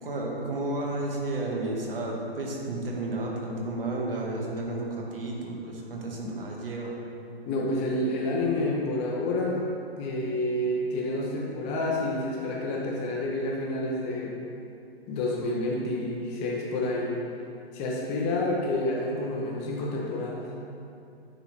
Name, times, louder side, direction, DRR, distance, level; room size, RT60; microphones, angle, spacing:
voice 1, 0.0-7.0, right 2 dB, 60° right, -1 dB, 1.6 m, -32 dB
voice 2, 7.5-9.6 10.0-14.4 15.1-17.1 17.7-20.4, left 1 dB, 20° left, -4 dB, 0.8 m, -29 dB
10.5 x 4.0 x 4.2 m, 2.6 s
figure-of-eight pair, 130°, 32 cm